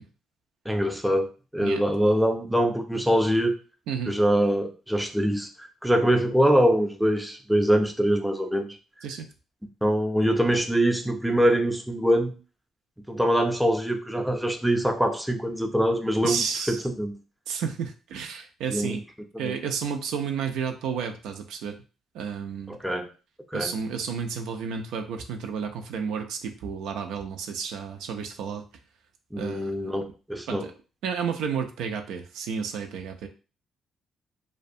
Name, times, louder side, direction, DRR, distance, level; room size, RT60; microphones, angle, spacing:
voice 1, 0.7-3.5 4.1-8.7 9.8-12.3 13.1-17.1 18.7-19.0 19.4-19.5 22.7-23.1 23.5-23.7 29.3-30.7, equal, 5° right, 4 dB, 0.5 m, -24 dB
voice 2, 16.2-16.8 17.5-19.0 19.4-21.7 22.1-22.8 23.5-28.6 29.4-29.9 30.5-30.7 31.0-33.3, right 6 dB, 90° right, 5 dB, 0.3 m, -31 dB
2.4 x 2.1 x 2.6 m, 0.33 s
cardioid pair, 90°, 0 cm